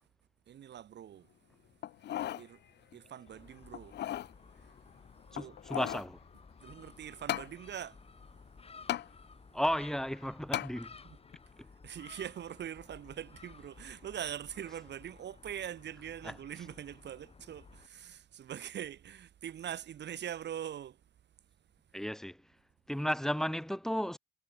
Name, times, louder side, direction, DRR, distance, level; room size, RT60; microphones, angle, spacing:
voice 1, 0.5-1.3 2.4-2.6 2.9-4.0 4.7-4.8 5.3-5.6 6.6-8.0 11.0-11.2 11.8-21.0, right 10 dB, 60° right, 1.5 m, -43 dB
sound 1, 1.8-2.5 2.9-3.0 3.7-4.3 5.3-6.1 7.3-7.5 8.9-9.1 10.5-10.7 11.3-11.4, left 12 dB, 60° left, 0.6 m, -36 dB
Gull seagull, 3.3-17.9, left 4 dB, 30° left, 2.4 m, -56 dB
voice 2, 5.3-6.2 9.5-10.9 16.2-16.3 21.9-22.4 22.9-24.2, equal, ahead, 3.1 m, -34 dB
cardioid pair, 90°, 20 cm